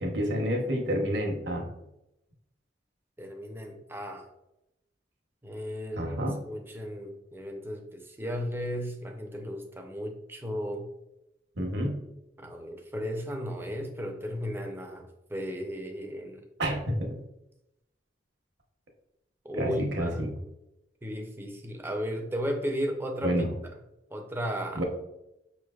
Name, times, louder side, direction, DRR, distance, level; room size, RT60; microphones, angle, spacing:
voice 1, 0.0-1.7 6.0-6.4 11.6-12.0 16.6-17.2 19.6-20.3 23.2-23.5 24.7-24.8, equal, 65° right, 1 dB, 0.9 m, -29 dB
voice 2, 3.2-4.3 5.4-6.2 6.5-10.9 12.4-16.4 19.4-20.3 21.0-23.5 24.1-24.8, equal, 10° right, 4 dB, 0.5 m, -35 dB
5.6 x 3.2 x 2.3 m, 0.89 s
head